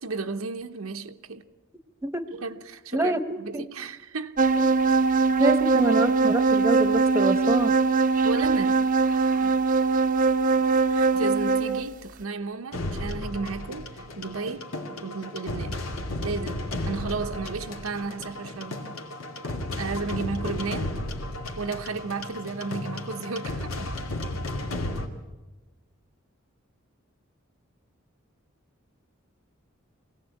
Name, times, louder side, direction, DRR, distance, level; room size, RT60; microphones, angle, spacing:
voice 1, 0.0-1.5 2.3-4.4 8.2-9.6 10.9-14.7 15.0-15.8 16.2-18.9 19.8-21.0 21.6-24.0, right 4 dB, 90° right, 1.0 m, -33 dB
sound 1, 4.4-11.8, right 4 dB, 40° right, 0.7 m, -21 dB
voice 2, 5.4-7.8, right 1 dB, 10° right, 1.0 m, -26 dB
sound 2, 12.7-25.1, left 1 dB, 85° left, 2.4 m, -33 dB
24.0 x 17.0 x 8.5 m
head